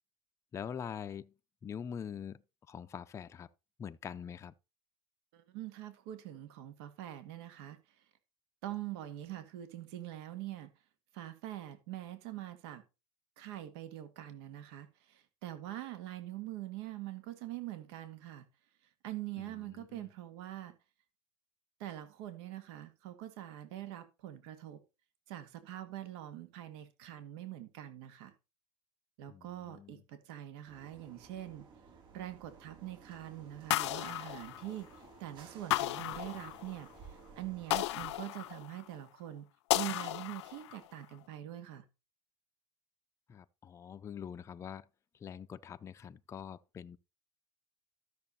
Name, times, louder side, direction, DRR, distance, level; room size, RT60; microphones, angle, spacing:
voice 1, 0.5-1.3 1.6-2.4 2.7-3.5 3.8-4.5 19.4-20.1 29.3-30.0 43.3-44.9 45.2-47.0, left 8 dB, 20° left, 0.5 m, -44 dB
voice 2, 5.3-7.8 8.6-10.7 11.1-12.8 13.4-18.5 19.0-20.7 21.8-24.8 25.3-28.3 29.2-31.6 32.1-39.5 39.7-41.9, right 13 dB, 70° right, 1.8 m, -44 dB
sound 1, 30.7-38.1, right 5 dB, 35° right, 6.1 m, -56 dB
sound 2, 33.7-35.1 35.7-36.9 37.7-38.9 39.7-40.9, left 16 dB, 90° left, 0.6 m, -34 dB
13.0 x 6.7 x 4.2 m
supercardioid pair, 135°, 14 cm